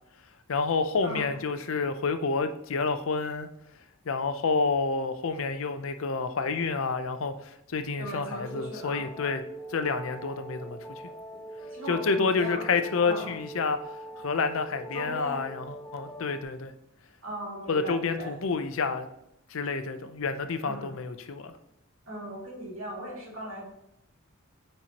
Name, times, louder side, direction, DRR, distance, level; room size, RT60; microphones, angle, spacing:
voice 1, 0.5-3.5 4.1-9.4 9.7-11.0 11.9-13.8 14.2-16.7 17.7-19.1 19.5-21.5, left 4 dB, 65° left, 9 dB, 0.6 m, -29 dB
voice 2, 8.0-9.1 11.7-12.7 13.0-13.4 14.9-15.5 17.2-18.4 20.6-20.9 22.1-23.6, right 1 dB, 70° right, -3 dB, 2.5 m, -38 dB
sound 1, 8.4-16.4, right 1 dB, 20° left, 1.1 m, -43 dB
9.2 x 4.4 x 2.9 m, 0.80 s
head